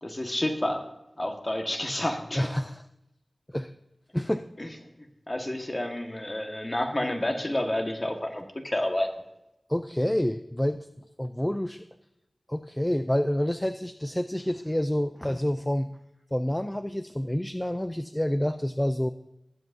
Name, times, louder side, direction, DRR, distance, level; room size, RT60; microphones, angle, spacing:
voice 1, 0.0-0.9 1.2-2.5 4.6-4.7 5.0-9.1, left 1 dB, 30° left, 3 dB, 1.4 m, -30 dB
voice 2, 2.4-2.8 3.5-3.7 4.1-4.5 9.7-10.9 11.2-11.8 12.5-15.9 16.3-19.1, equal, 10° left, 10 dB, 0.4 m, -28 dB
19.5 x 8.3 x 2.6 m, 0.91 s
wide cardioid pair, 70°, 0 cm